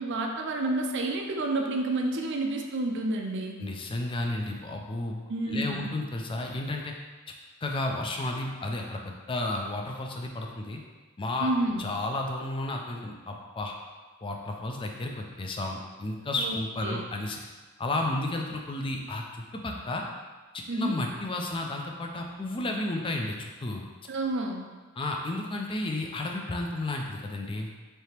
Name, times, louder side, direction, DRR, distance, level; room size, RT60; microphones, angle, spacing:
voice 1, 0.0-3.6 5.3-5.9 11.4-11.9 16.4-17.1 20.7-21.0 24.1-24.7, right 2 dB, 60° right, 2 dB, 0.5 m, -30 dB
voice 2, 3.6-5.2 5.5-6.9 7.6-10.8 11.2-11.5 11.8-13.7 14.2-17.4 17.8-20.0 20.5-23.8 25.0-27.7, left 2 dB, 25° left, 2 dB, 0.4 m, -32 dB
3.3 x 2.8 x 4.3 m, 1.4 s
head